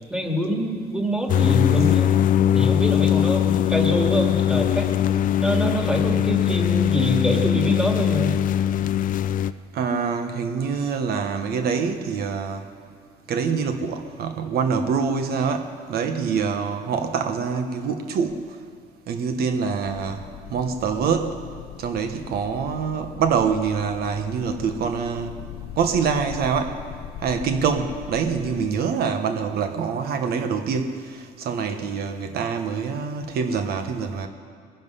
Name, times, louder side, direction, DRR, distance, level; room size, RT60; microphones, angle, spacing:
voice 1, 0.1-2.1 2.5-4.9 5.4-8.3, equal, 5° right, 1 dB, 2.1 m, -25 dB
sound 1, 1.3-9.5, left 10 dB, 55° left, 0.5 m, -21 dB
voice 2, 9.7-12.6 13.3-18.4 19.1-20.2 20.5-21.4 21.8-25.3 25.8-26.8 27.2-34.3, right 6 dB, 65° right, 6 dB, 1.1 m, -25 dB
sound 2, 19.8-28.8, left 10 dB, 85° left, 0.8 m, -40 dB
20.5 x 10.5 x 5.6 m, 2.2 s
cardioid pair, 110°, 17 cm